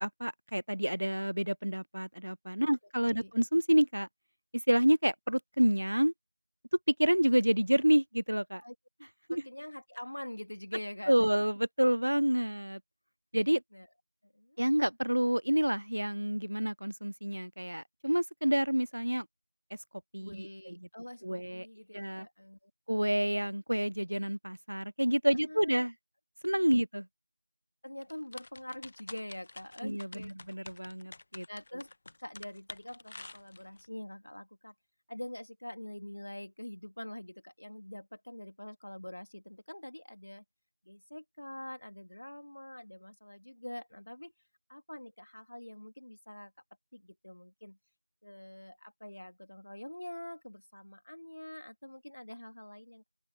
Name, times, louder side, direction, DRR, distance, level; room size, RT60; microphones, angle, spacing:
voice 1, 0.0-4.1 4.7-6.1 6.9-8.6 9.3-9.4 11.1-12.8 13.3-13.6 14.6-19.3 20.1-20.7 21.2-21.7 21.9-22.3 22.9-25.9 26.4-27.1 29.8-31.5, equal, 70° right, 0.4 m, -28 dB
voice 2, 9.3-11.1 13.7-13.9 14.2-14.6 20.2-22.7 25.4-25.9 27.8-30.3 31.5-31.9 32.2-34.7 35.1-40.4 40.9-44.3 44.7-46.5 46.9-47.8 48.2-53.1, left 1 dB, 60° left, 2.7 m, -45 dB
sound 1, 28.0-33.9, left 2 dB, 25° left, 1.3 m, -49 dB
open air
figure-of-eight pair, 175°, 0 cm